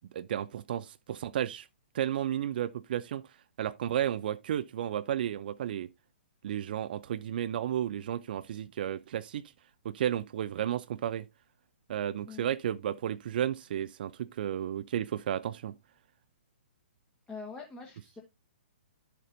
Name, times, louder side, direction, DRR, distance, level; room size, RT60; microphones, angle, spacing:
voice 1, 0.1-1.7 1.9-3.2 3.6-5.9 6.4-9.4 9.8-11.2 11.9-15.7, right 10 dB, 50° right, 0.4 m, -33 dB
voice 2, 17.3-18.2, left 4 dB, 10° left, 1.3 m, -44 dB
11.0 x 6.7 x 2.6 m
hypercardioid pair, 130°, 6 cm